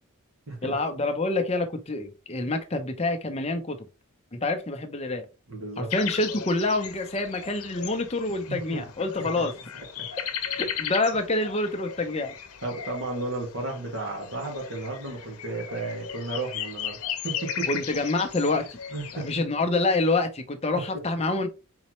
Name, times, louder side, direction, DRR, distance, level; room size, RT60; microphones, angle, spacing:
voice 1, 0.6-3.9 4.3-5.2 5.8-9.5 10.5-12.4 17.7-18.6 19.1-21.5, left 2 dB, 30° left, 0.7 m, -27 dB
voice 2, 5.5-5.9 8.5-8.8 9.4-9.5 10.0-10.1 12.6-17.7 18.9-19.3 20.7-20.8, right 2 dB, 65° right, 2.0 m, -33 dB
sound 1, 5.9-19.3, left 8 dB, 85° left, 0.9 m, -36 dB
4.3 x 4.0 x 3.1 m
head